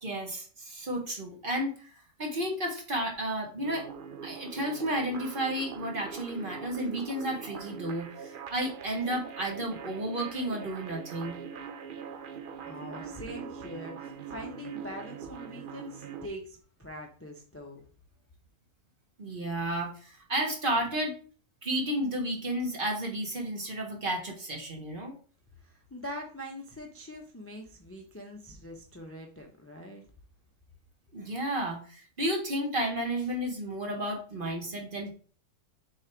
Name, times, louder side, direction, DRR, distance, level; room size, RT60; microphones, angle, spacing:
voice 1, 0.0-1.7 2.2-3.9 4.2-11.4 19.2-21.1 21.6-25.1 31.1-35.1, right 1 dB, 35° right, 1 dB, 1.4 m, -32 dB
sound 1, 3.6-16.3, right 6 dB, 70° right, 0.5 m, -42 dB
voice 2, 12.6-17.8 25.6-30.0, equal, 15° left, 1 dB, 0.6 m, -43 dB
6.5 x 3.4 x 4.5 m, 0.41 s
omnidirectional pair, 1.6 m